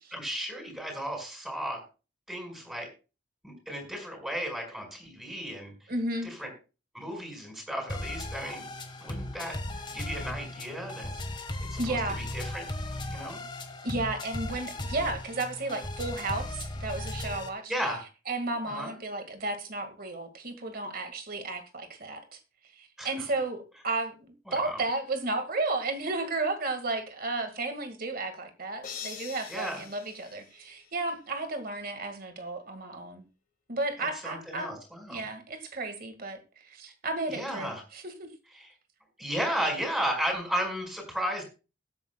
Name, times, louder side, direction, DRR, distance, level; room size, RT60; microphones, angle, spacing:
voice 1, 0.1-1.8 2.3-2.9 3.4-5.7 6.2-6.5 6.9-8.7 9.0-9.6 9.9-11.1 11.7-12.6 13.1-13.4 17.7-18.0 18.6-18.9 23.0-23.2 24.5-24.8 29.5-29.8 34.0-35.2 37.3-37.8 38.6-38.7 39.2-41.4, equal, 5° right, 5.1 m, -34 dB
voice 2, 5.9-6.3 11.8-12.2 13.8-17.7 18.3-22.4 22.8-33.2 33.7-34.7 35.1-38.3, right 2 dB, 50° right, 1.9 m, -33 dB
sound 1, 7.9-17.5, left 1 dB, 25° left, 1.4 m, -37 dB
sound 2, 28.8-31.2, left 8 dB, 45° left, 1.8 m, -44 dB
21.5 x 8.7 x 2.3 m
head